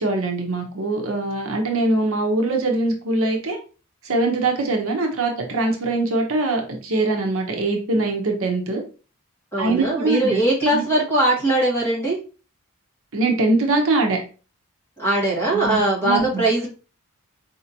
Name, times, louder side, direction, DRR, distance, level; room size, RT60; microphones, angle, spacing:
voice 1, 0.0-3.6 4.0-8.8 9.6-10.4 10.7-10.8 13.1-14.2 15.5-16.4, right 2 dB, 65° right, 2 dB, 0.8 m, -22 dB
voice 2, 9.5-12.2 15.0-16.7, right 1 dB, 10° left, -5 dB, 1.5 m, -20 dB
4.3 x 2.7 x 2.7 m, 0.35 s
head